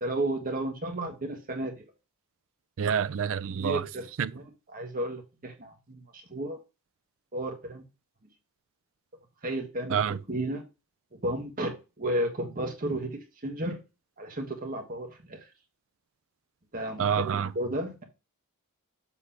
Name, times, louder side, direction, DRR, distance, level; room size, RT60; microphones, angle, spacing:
voice 1, 0.0-1.8 3.5-4.4 4.7-6.6 7.3-7.8 9.4-10.6 11.2-11.7 12.0-13.8 14.2-15.5 16.7-18.0, right 1 dB, 40° right, 1.5 m, -33 dB
voice 2, 2.8-3.8 4.2-4.3 9.9-10.2 17.0-17.5, right 7 dB, 60° right, 0.4 m, -27 dB
7.4 x 3.2 x 5.7 m
head